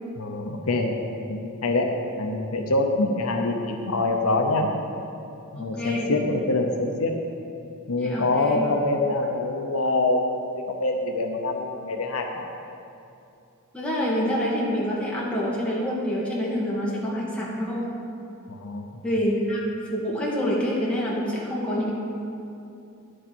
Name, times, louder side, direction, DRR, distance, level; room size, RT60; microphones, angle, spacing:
voice 1, 0.2-1.0 1.3-4.7 5.5-7.1 7.9-12.5 18.5-19.0, left 2 dB, 75° left, 3 dB, 0.7 m, -25 dB
voice 2, 5.6-6.1 8.0-8.6 13.7-17.9 19.0-19.6 19.9-21.9, equal, 5° left, -6 dB, 1.7 m, -26 dB
10.0 x 6.6 x 4.5 m, 2.7 s
head